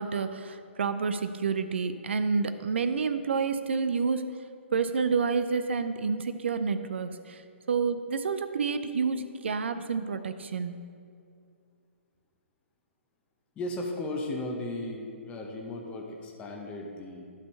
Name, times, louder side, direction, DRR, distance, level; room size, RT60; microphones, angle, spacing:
voice 1, 0.0-4.4 4.7-7.4 7.7-10.7, right 5 dB, 65° right, 10 dB, 0.4 m, -29 dB
voice 2, 13.6-17.3, left 2 dB, 15° left, 1 dB, 0.9 m, -36 dB
11.5 x 4.3 x 5.5 m, 2.3 s
figure-of-eight pair, 125°, 7 cm